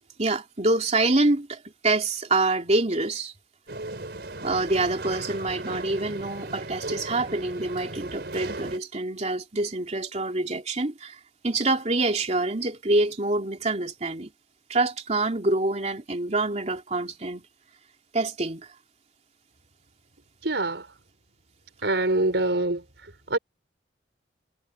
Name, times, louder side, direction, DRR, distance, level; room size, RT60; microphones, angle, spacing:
voice 1, 0.2-3.3 4.4-11.2 11.4-14.3 14.7-17.4 18.1-18.7, right 2 dB, 40° right, 2.9 m, -26 dB
sound 1, 3.7-8.8, right 2 dB, 65° right, 5.0 m, -36 dB
voice 2, 20.4-20.9 21.8-22.8 23.3-23.4, right 2 dB, 80° right, 4.6 m, -24 dB
head